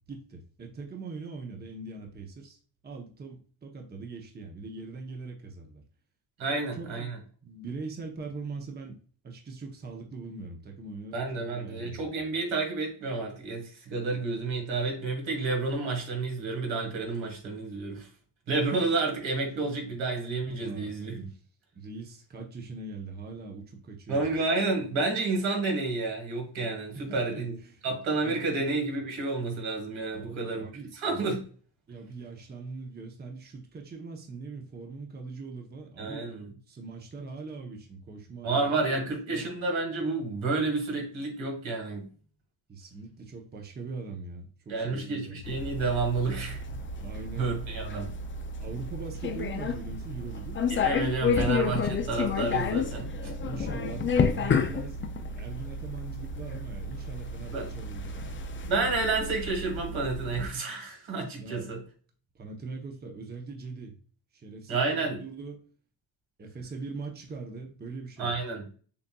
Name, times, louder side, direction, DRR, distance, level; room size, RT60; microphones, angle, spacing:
voice 1, 0.1-5.8 6.4-7.2 7.4-12.3 19.6-19.7 20.6-21.4 21.7-24.4 26.9-27.8 28.2-28.7 30.1-30.9 31.9-36.3 36.7-38.7 39.3-39.5 42.7-45.4 46.8-47.6 48.6-50.6 53.0-58.5 61.4-61.7 62.3-64.0 64.3-65.7 66.4-68.4, right 4 dB, 20° right, 0.7 m, -41 dB
voice 2, 6.4-7.2 11.1-18.1 18.5-21.3 24.1-27.5 27.8-30.6 31.0-31.4 36.0-36.5 38.4-42.1 44.7-46.6 47.4-48.1 50.7-53.1 57.5-57.7 58.6-61.8 64.7-65.2 68.2-68.7, right 3 dB, 80° right, 1.7 m, -30 dB
sound 1, 45.4-60.5, left 4 dB, 30° left, 0.4 m, -31 dB
6.8 x 2.5 x 2.2 m
cardioid pair, 125°, 47 cm